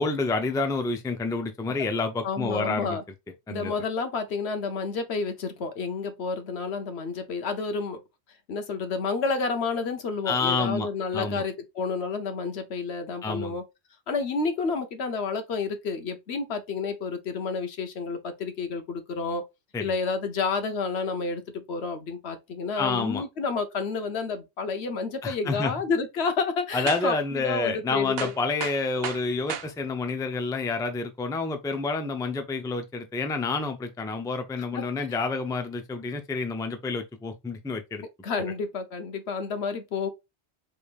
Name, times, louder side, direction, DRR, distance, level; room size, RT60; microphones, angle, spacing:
voice 1, 0.0-3.0 3.5-3.7 10.3-10.9 11.1-11.4 13.2-13.6 19.7-19.9 22.8-23.2 25.2-25.7 26.7-38.0, left 3 dB, 5° left, 0.4 m, -29 dB
voice 2, 2.2-3.0 3.5-8.0 8.5-13.6 14.1-19.4 19.8-28.3 34.7-35.1 38.2-40.1, left 4 dB, 70° left, 1.1 m, -30 dB
sound 1, 26.9-27.2 27.6-27.7 28.2-29.7 30.3-30.4 31.7-31.9, right 8 dB, 65° right, 0.8 m, -34 dB
4.9 x 3.5 x 2.5 m
omnidirectional pair, 1.2 m